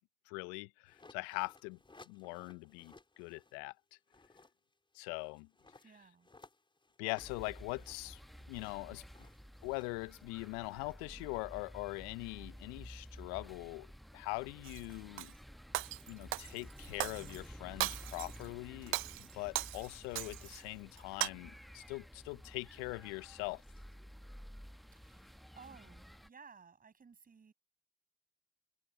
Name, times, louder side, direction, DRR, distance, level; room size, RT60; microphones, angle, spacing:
voice 1, 0.3-1.8 2.1-3.7 4.9-5.5 7.0-8.2 8.5-9.0 9.6-13.9 14.1-15.3 16.1-19.0 19.3-23.6, left 28 dB, 80° left, 0.6 m, -42 dB
sound 1, 0.9-3.6 3.9-11.0, left 3 dB, 25° left, 4.9 m, -62 dB
voice 2, 5.8-6.3 24.9-27.5, right 5 dB, 40° right, 7.7 m, -58 dB
sound 2, 7.2-26.3, equal, ahead, 1.1 m, -53 dB
Shatter, 14.6-15.3 15.7-17.4 17.8-18.5 18.8-20.6 21.0-21.3, right 20 dB, 70° right, 0.6 m, -38 dB
hypercardioid pair, 50°, 21 cm